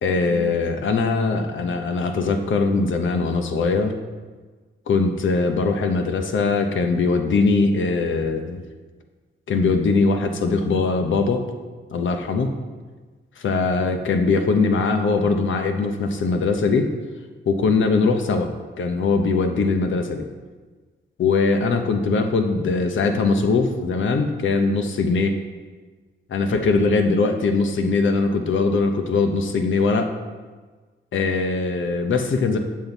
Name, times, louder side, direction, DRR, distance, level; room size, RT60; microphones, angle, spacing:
voice 1, 0.0-4.0 4.9-8.6 9.5-11.4 11.9-12.5 13.4-16.9 17.5-18.5 18.8-20.3 21.2-25.4 26.3-30.1 31.1-32.6, left 4 dB, 70° left, 6 dB, 0.9 m, -21 dB
7.7 x 7.2 x 4.0 m, 1.4 s
wide cardioid pair, 105°, 20 cm